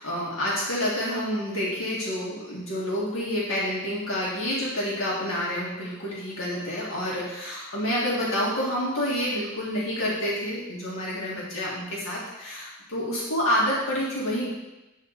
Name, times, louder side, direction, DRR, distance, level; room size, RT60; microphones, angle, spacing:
voice 1, 0.0-14.5, equal, 85° left, -6 dB, 2.1 m, -28 dB
9.3 x 4.0 x 6.5 m, 1.0 s
head